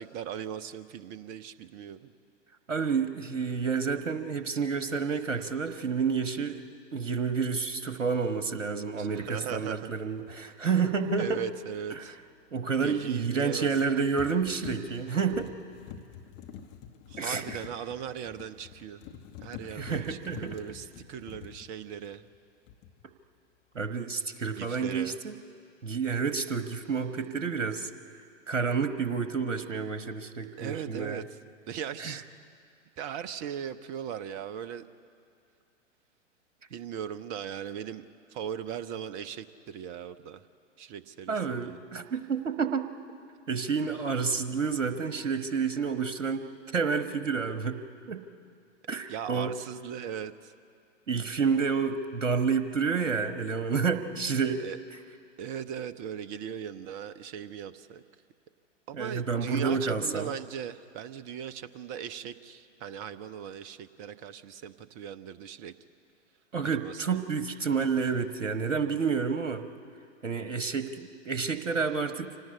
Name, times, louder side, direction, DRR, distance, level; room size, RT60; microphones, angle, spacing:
voice 1, 0.0-2.1 9.0-9.9 11.2-12.2 12.8-13.7 17.1-19.0 19.4-22.2 24.5-25.2 30.6-32.2 33.0-34.8 36.7-38.0 38.3-40.4 40.8-41.8 49.1-50.5 54.5-54.8 55.4-58.0 58.9-65.7 66.6-67.3, right 8 dB, 30° right, 13 dB, 0.8 m, -39 dB
voice 2, 2.7-6.6 6.9-11.4 11.9-12.0 12.5-15.5 17.2-17.6 19.7-20.6 23.7-25.3 25.8-27.9 28.5-31.2 32.0-32.2 41.3-42.9 43.5-46.4 46.7-47.8 48.1-48.2 48.9-49.5 51.1-54.6 58.9-60.3 66.5-69.6 70.2-72.3, right 5 dB, 70° right, 9 dB, 1.3 m, -29 dB
sound 1, 10.2-10.4 13.5-13.9 14.2-22.4 22.7-23.1, left 8 dB, 30° left, 1.2 m, -46 dB
25.5 x 18.5 x 8.5 m, 2.4 s
figure-of-eight pair, 105°, 38 cm